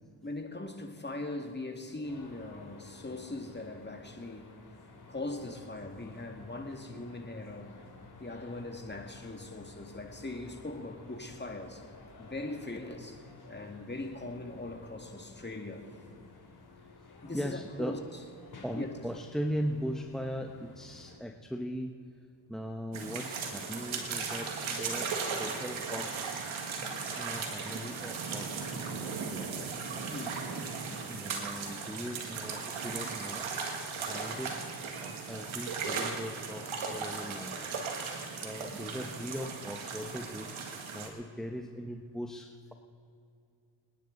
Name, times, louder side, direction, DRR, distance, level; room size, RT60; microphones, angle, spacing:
voice 1, 0.2-4.5 5.1-7.7 8.2-11.8 12.2-15.9 17.2-18.0 18.7-18.9 30.1-30.5, left 2 dB, 20° left, 4 dB, 2.2 m, -40 dB
sound 1, 2.0-21.2, left 3 dB, 55° left, 3.2 m, -53 dB
voice 2, 17.0-18.0 18.6-22.0 22.5-26.5 27.2-29.7 30.9-33.5 33.9-37.8 38.4-40.5 40.9-42.7, equal, ahead, 2 dB, 1.0 m, -39 dB
sound 2, 22.9-41.1, right 5 dB, 85° right, 1.8 m, -37 dB
27.5 x 10.0 x 4.0 m, 2.5 s
supercardioid pair, 45°, 46 cm